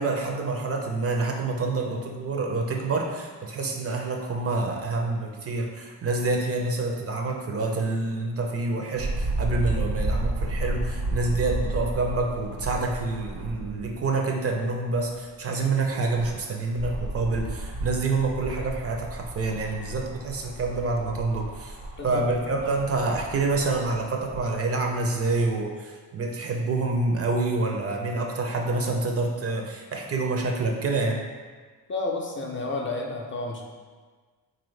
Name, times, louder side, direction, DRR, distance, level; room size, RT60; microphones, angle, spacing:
voice 1, 0.0-21.8 22.0-31.2, right 3 dB, 40° right, 1 dB, 0.4 m, -27 dB
sound 1, 9.0-14.0 14.5-14.6 15.9-24.4 25.2-25.3, right 2 dB, 90° right, 1.2 m, -32 dB
voice 2, 22.0-22.5 31.9-33.6, left 2 dB, 35° left, 0 dB, 0.4 m, -31 dB
3.7 x 2.6 x 3.1 m, 1.5 s
cardioid pair, 110°, 38 cm